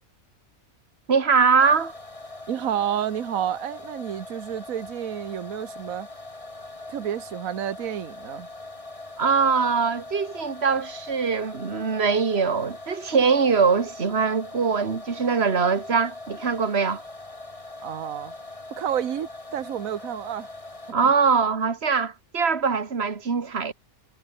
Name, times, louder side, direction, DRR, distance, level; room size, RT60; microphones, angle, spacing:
voice 1, 1.1-1.9 9.2-17.0 20.9-23.7, right 5 dB, 45° right, 2.1 m, -22 dB
sound 1, 1.6-20.9, left 2 dB, 20° left, 2.3 m, -41 dB
voice 2, 2.5-6.1 6.9-8.5 17.8-18.3 18.7-20.5 20.9-21.1, right 10 dB, 70° right, 1.5 m, -30 dB
omnidirectional pair, 1.5 m